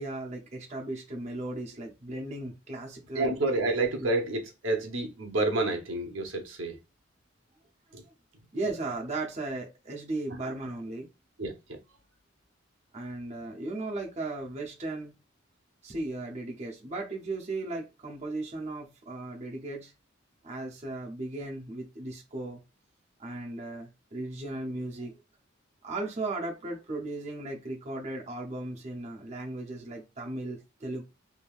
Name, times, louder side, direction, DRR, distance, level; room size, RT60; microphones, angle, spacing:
voice 1, 0.0-3.3 4.0-4.1 8.5-11.1 12.9-15.1 15.8-19.9 20.4-22.6 23.2-25.2 25.8-31.0, right 2 dB, 35° right, 0.6 m, -36 dB
voice 2, 3.1-6.8 7.9-8.0 11.4-11.8, right 2 dB, 75° right, 0.8 m, -29 dB
3.3 x 2.7 x 2.3 m
head